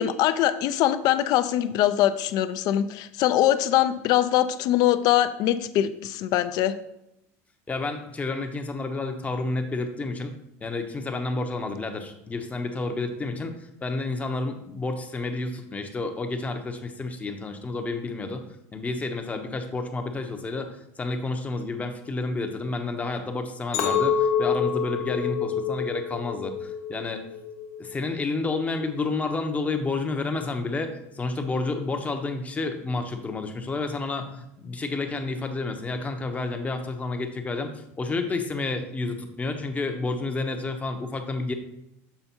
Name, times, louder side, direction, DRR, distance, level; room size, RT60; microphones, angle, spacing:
voice 1, 0.0-6.7, left 12 dB, 60° left, 12 dB, 0.5 m, -22 dB
voice 2, 7.7-10.4 10.6-13.5 13.8-18.4 18.7-27.2 27.8-41.5, left 3 dB, 20° left, 5 dB, 0.7 m, -30 dB
Chink clink, 23.7-28.1 28.5-29.0, left 7 dB, 85° left, 1.0 m, -27 dB
6.9 x 3.4 x 4.4 m, 0.83 s
supercardioid pair, 115°, 8 cm